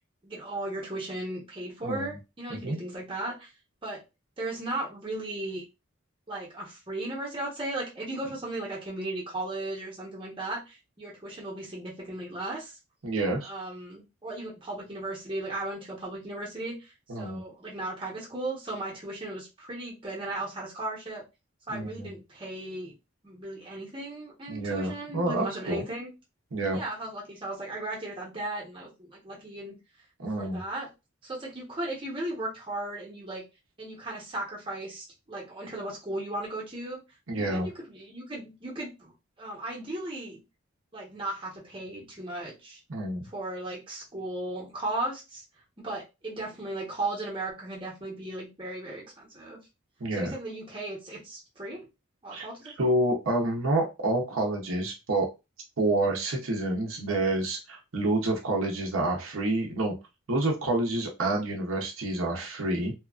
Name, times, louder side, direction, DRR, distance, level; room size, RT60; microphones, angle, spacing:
voice 1, 0.2-3.5 3.8-4.0 4.4-5.6 6.3-12.8 13.4-21.2 21.7-22.9 23.2-26.1 26.7-29.8 30.4-30.9 31.2-33.4 33.8-37.0 37.3-39.1 39.4-40.4 40.9-42.8 43.2-45.4 45.8-49.6 50.2-51.9 52.2-52.9, right 2 dB, 25° right, -4 dB, 1.0 m, -36 dB
voice 2, 1.8-2.2 2.6-2.8 13.0-13.5 17.1-17.4 21.7-22.1 24.5-25.8 26.5-26.8 30.2-30.6 37.3-37.7 42.9-43.3 50.0-50.3 52.3-52.5 52.8-55.3 55.8-59.9 60.3-62.9, right 2 dB, 85° right, 1 dB, 0.7 m, -28 dB
2.8 x 2.4 x 2.3 m, 0.26 s
head